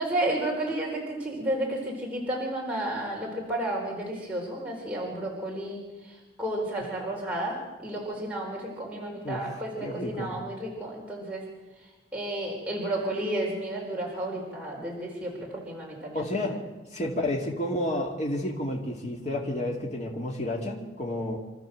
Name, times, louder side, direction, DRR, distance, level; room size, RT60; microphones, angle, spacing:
voice 1, 0.0-5.8 6.1-11.4 12.1-16.5 17.1-17.3, right 1 dB, 10° right, -4 dB, 4.3 m, -32 dB
voice 2, 9.8-10.3 16.1-16.6 16.9-21.4, left 1 dB, 40° left, -1 dB, 2.6 m, -30 dB
27.0 x 13.5 x 7.6 m, 1.2 s
head